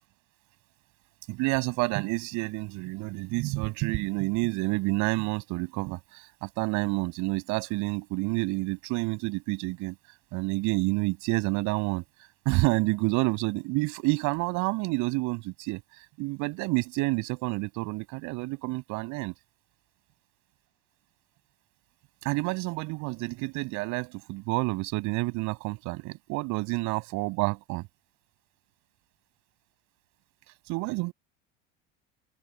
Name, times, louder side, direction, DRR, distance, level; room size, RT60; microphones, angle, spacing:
voice 1, 1.3-10.0 10.3-12.0 12.4-15.8 16.2-19.3 22.2-27.9 30.7-31.1, right 24 dB, 70° right, 7.7 m, -29 dB
supercardioid pair, 95°, 30 cm